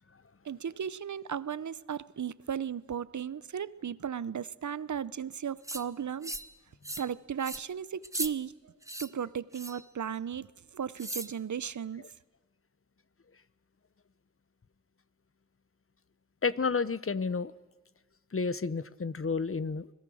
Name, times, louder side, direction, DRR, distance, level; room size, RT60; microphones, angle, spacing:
voice 1, 0.4-6.3 7.0-8.7 9.0-12.0, right 8 dB, 75° right, 0.7 m, -36 dB
sound 1, 5.6-5.8 6.2-6.5 6.8-7.1 7.4-7.6 8.0-8.3 8.8-9.1 9.5-9.8 11.0-11.3, right 1 dB, 10° right, 1.2 m, -37 dB
voice 2, 16.4-17.5 18.3-19.9, left 4 dB, 45° left, 0.9 m, -31 dB
29.5 x 21.0 x 6.3 m
cardioid pair, 50°, 30 cm